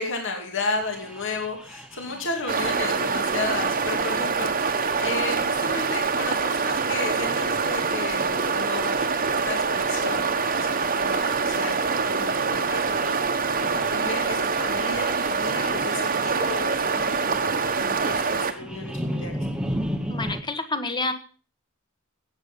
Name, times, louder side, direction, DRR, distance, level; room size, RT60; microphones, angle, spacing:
voice 1, 0.0-19.3, left 3 dB, 60° left, 3 dB, 2.7 m, -33 dB
sound 1, 0.8-20.4, equal, 5° right, 1.0 m, -38 dB
sound 2, 2.5-18.5, right 5 dB, 40° right, 1.2 m, -25 dB
voice 2, 20.1-21.1, left 2 dB, 20° left, 8 dB, 1.3 m, -28 dB
17.5 x 8.2 x 5.4 m, 0.40 s
head